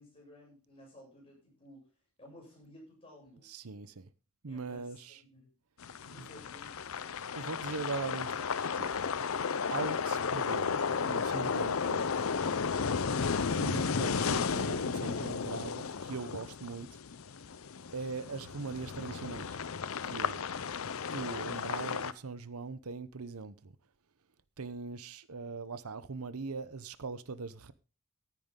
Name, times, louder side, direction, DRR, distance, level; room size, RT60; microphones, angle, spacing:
voice 1, 0.0-1.9 2.2-3.5 4.5-5.5 6.0-7.1 18.2-18.3, left 1 dB, 25° left, 7.6 m, -56 dB
voice 2, 3.4-4.1 4.4-5.2 6.2-6.3 7.4-8.9 9.7-12.2 13.2-16.9 17.9-19.6 20.0-20.4 21.1-23.8 24.6-27.7, right 4 dB, 90° right, 0.8 m, -41 dB
sound 1, 5.8-22.1, left 5 dB, 75° left, 0.6 m, -34 dB
15.0 x 9.4 x 3.8 m
head